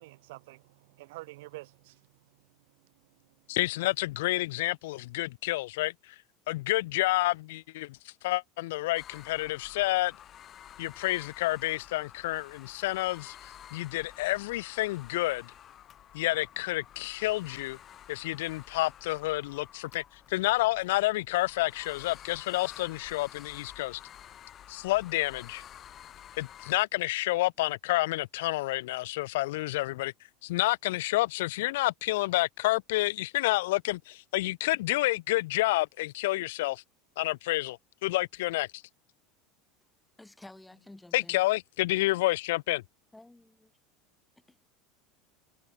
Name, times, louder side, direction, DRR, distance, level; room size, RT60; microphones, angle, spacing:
voice 1, 0.0-2.0, right 20 dB, 75° right, 2.8 m, -47 dB
voice 2, 3.5-6.1 6.5-10.1 10.8-15.5 16.1-17.8 18.1-24.0 24.7-25.6 26.4-30.1 30.4-36.8 37.2-38.8 41.1-42.8, left 19 dB, 80° left, 0.8 m, -29 dB
sound 1, 9.0-26.8, left 10 dB, 30° left, 4.4 m, -51 dB
voice 3, 40.2-41.4 43.1-43.7 44.5-44.6, left 2 dB, 5° left, 1.9 m, -52 dB
supercardioid pair, 155°, 0 cm